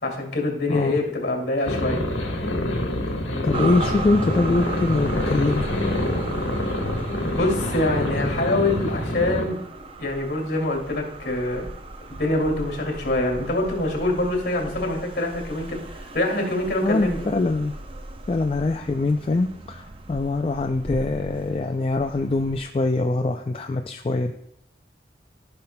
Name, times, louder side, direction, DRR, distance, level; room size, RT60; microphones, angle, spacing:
voice 1, 0.0-2.0 7.1-9.6 10.0-11.7 12.1-17.2, left 2 dB, 55° left, 2 dB, 2.3 m, -25 dB
voice 2, 0.7-1.0 3.4-5.6 16.8-17.8 18.3-24.3, left 3 dB, 30° left, 4 dB, 0.3 m, -23 dB
sound 1, 1.6-9.5, left 1 dB, 85° left, 1.3 m, -26 dB
sound 2, 3.5-22.6, right 3 dB, 30° right, 0.5 m, -37 dB
14.5 x 5.7 x 2.2 m, 0.78 s
head